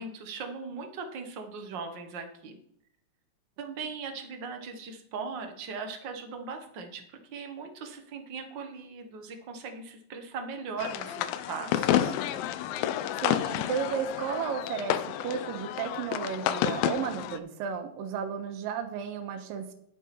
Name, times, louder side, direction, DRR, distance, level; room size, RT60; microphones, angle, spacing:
voice 1, 0.0-2.6 3.6-12.1, right 5 dB, 60° right, 5 dB, 1.2 m, -39 dB
sound 1, 10.8-17.4, left 11 dB, 90° left, 2.4 m, -30 dB
voice 2, 13.2-19.7, right 7 dB, 85° right, 7 dB, 2.7 m, -33 dB
10.5 x 8.4 x 4.2 m, 0.70 s
omnidirectional pair, 3.9 m